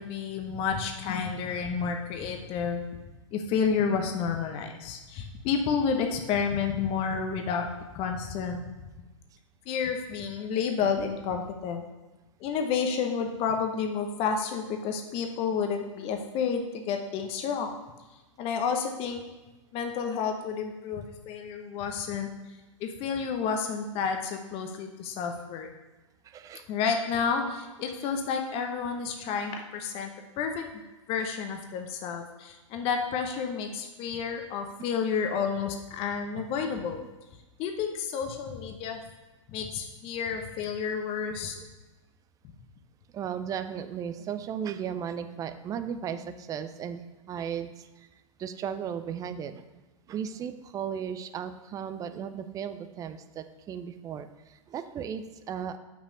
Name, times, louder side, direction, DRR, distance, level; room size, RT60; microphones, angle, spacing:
voice 1, 0.0-2.9 3.3-7.7 7.9-8.6 9.7-11.8 12.4-17.7 18.4-19.2 19.7-22.3 22.8-25.7 26.7-30.1 30.4-30.7 31.1-37.0 37.6-39.0 39.5-41.5, left 6 dB, 35° left, 4 dB, 0.9 m, -30 dB
voice 2, 26.2-26.6 29.3-29.4 41.2-41.7 43.1-47.0 47.3-48.1 48.4-49.6 50.1-55.8, right 8 dB, 20° right, 10 dB, 0.5 m, -36 dB
6.2 x 5.1 x 6.6 m, 1.1 s
figure-of-eight pair, 105°, 17 cm